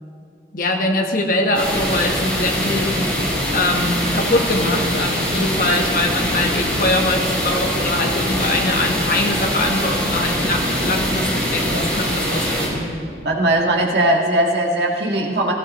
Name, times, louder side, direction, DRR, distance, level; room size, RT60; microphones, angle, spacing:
voice 1, 0.5-3.0 3.5-12.9, left 1 dB, 50° left, 2 dB, 1.3 m, -22 dB
sound 1, 1.5-12.7, equal, 5° left, 3.4 m, -23 dB
voice 2, 13.3-15.5, right 1 dB, 75° right, -1 dB, 1.7 m, -19 dB
16.5 x 15.5 x 3.1 m, 2.3 s
head